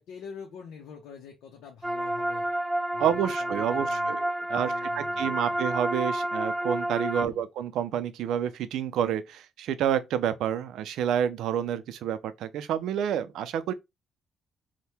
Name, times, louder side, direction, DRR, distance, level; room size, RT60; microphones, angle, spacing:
voice 1, 0.0-2.5 2.9-4.2 4.5-5.6 7.1-7.5, left 6 dB, 85° left, 0.6 m, -45 dB
sound 1, 1.8-7.3, right 1 dB, 5° right, 0.3 m, -30 dB
voice 2, 3.0-4.2 4.5-13.7, right 9 dB, 80° right, 0.4 m, -29 dB
2.8 x 2.1 x 3.3 m
cardioid pair, 90°, 0 cm